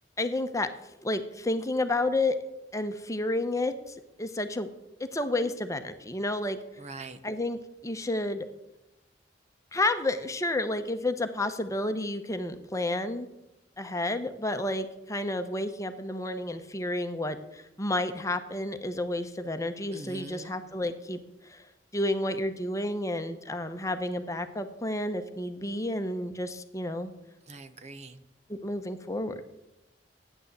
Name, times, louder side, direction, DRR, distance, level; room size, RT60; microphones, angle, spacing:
voice 1, 0.2-0.7 1.0-2.3 2.7-4.7 5.0-6.6 7.2-8.5 9.7-13.3 13.8-21.7 21.9-27.1 28.5-29.4, left 1 dB, 15° left, 8 dB, 1.0 m, -31 dB
voice 2, 6.8-7.2 19.9-20.6 27.5-28.2, right 2 dB, 40° right, 10 dB, 0.8 m, -43 dB
14.0 x 9.9 x 8.0 m, 0.94 s
head